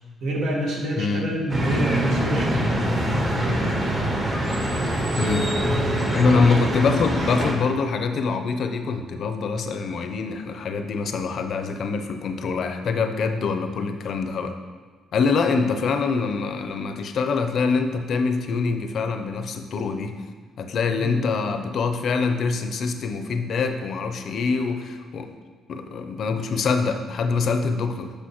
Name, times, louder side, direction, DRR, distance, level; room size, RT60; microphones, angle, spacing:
voice 1, 0.2-3.8 5.6-6.5 21.0-21.2, equal, 75° right, -2 dB, 1.5 m, -27 dB
voice 2, 1.0-1.3 5.2-5.5 6.1-14.5 15.1-20.1 20.6-25.3 25.7-28.1, left 4 dB, 65° left, 7 dB, 0.5 m, -24 dB
sound 1, 1.5-7.5, right 1 dB, 35° right, 1.4 m, -24 dB
8.5 x 5.1 x 3.0 m, 1.5 s
cardioid pair, 90°, 0 cm